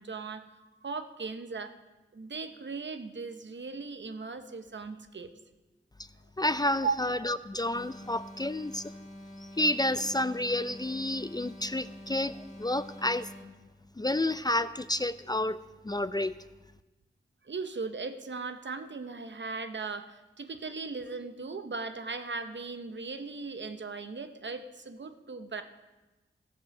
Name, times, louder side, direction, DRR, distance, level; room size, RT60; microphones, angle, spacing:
voice 1, 0.0-1.7 2.1-5.3 6.8-7.0 17.4-25.6, right 4 dB, 65° right, 8 dB, 0.8 m, -38 dB
voice 2, 6.4-8.9 9.4-13.3 14.0-15.6 15.8-16.3, left 1 dB, 20° left, 13 dB, 0.4 m, -30 dB
sound 1, 7.7-13.6, equal, 80° left, 1.6 m, -47 dB
15.0 x 5.5 x 6.4 m, 1.1 s
wide cardioid pair, 50°, 21 cm